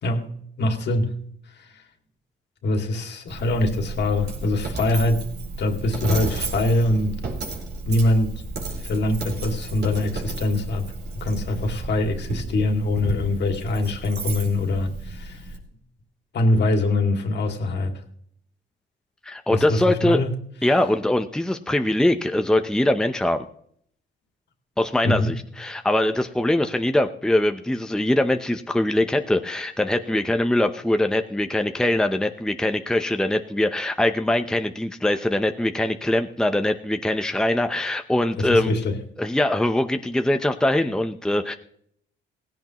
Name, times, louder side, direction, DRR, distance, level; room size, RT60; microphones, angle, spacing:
voice 1, 0.0-1.2 1.6-1.8 2.6-5.3 5.6-7.2 7.9-8.4 8.8-10.8 11.1-15.5 16.3-17.9 19.5-20.3 25.0-25.3 38.4-39.0, left 2 dB, 60° left, 4 dB, 2.5 m, -23 dB
Coin (dropping), 3.3-15.6, right 3 dB, 55° right, 4.1 m, -33 dB
voice 2, 19.2-20.2 20.6-23.4 24.8-38.7 39.2-41.5, left 1 dB, 5° left, 7 dB, 0.8 m, -22 dB
17.0 x 16.0 x 3.1 m, 0.67 s
cardioid pair, 90°, 20 cm